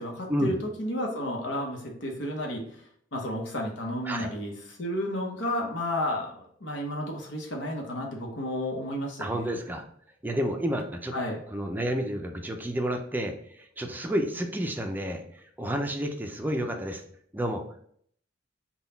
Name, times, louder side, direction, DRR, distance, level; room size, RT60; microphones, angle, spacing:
voice 1, 0.0-2.7 3.1-9.5 11.1-11.4, left 1 dB, 75° left, 0 dB, 0.9 m, -32 dB
voice 2, 9.2-9.8 10.2-11.1 11.5-17.0 17.3-17.8, equal, 10° right, 4 dB, 0.4 m, -30 dB
3.8 x 2.3 x 3.9 m, 0.64 s
head